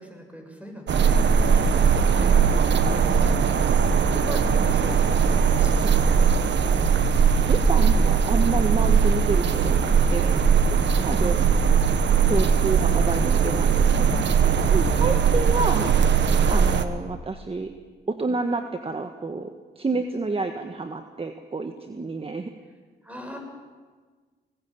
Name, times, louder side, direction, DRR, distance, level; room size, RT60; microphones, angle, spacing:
voice 1, 0.0-6.3 10.9-11.2 14.9-15.0 15.8-16.0 23.0-23.4, equal, 5° right, 3 dB, 6.9 m, -40 dB
sound 1, 0.9-16.8, right 6 dB, 70° right, 1.5 m, -20 dB
voice 2, 7.5-10.4 10.7-10.8 11.1-11.4 12.3-14.2 14.7-15.9 16.5-17.7 18.1-22.5, right 3 dB, 30° right, 7 dB, 1.6 m, -29 dB
20.0 x 19.5 x 8.7 m, 1.4 s
cardioid pair, 70°, 19 cm